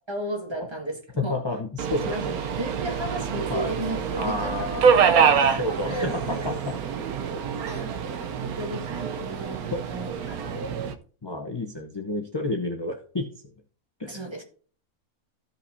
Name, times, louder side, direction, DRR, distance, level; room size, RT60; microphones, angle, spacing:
voice 1, 0.1-1.4 1.9-4.7 4.9-6.5 7.7-8.0 8.4-10.5 14.0-14.4, right 1 dB, 20° right, 2 dB, 1.6 m, -34 dB
voice 2, 1.2-2.2 3.5-3.7 4.2-5.0 5.6-6.7 7.3-7.6 9.2-9.3 9.7-9.8 10.5-10.9 11.2-13.3 14.0-14.3, left 2 dB, 20° left, 4 dB, 0.7 m, -31 dB
Subway metro underground, 1.8-10.9, right 7 dB, 80° right, 1.2 m, -26 dB
14.5 x 5.7 x 2.7 m, 0.42 s
omnidirectional pair, 1.5 m